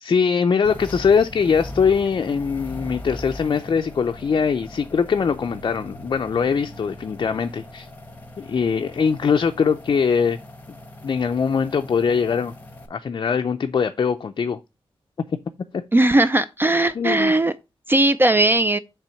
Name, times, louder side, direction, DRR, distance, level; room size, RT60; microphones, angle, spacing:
voice 1, 0.0-7.9 8.4-10.4 11.0-12.5 12.9-14.6 15.3-15.4 15.7-15.8 17.0-17.3, left 6 dB, 50° left, 0.4 m, -22 dB
sound 1, 0.6-12.9, left 1 dB, 15° left, 1.0 m, -40 dB
voice 2, 15.9-17.5 17.9-18.8, right 1 dB, 20° right, 0.3 m, -18 dB
5.8 x 3.5 x 5.5 m
wide cardioid pair, 125°, 10 cm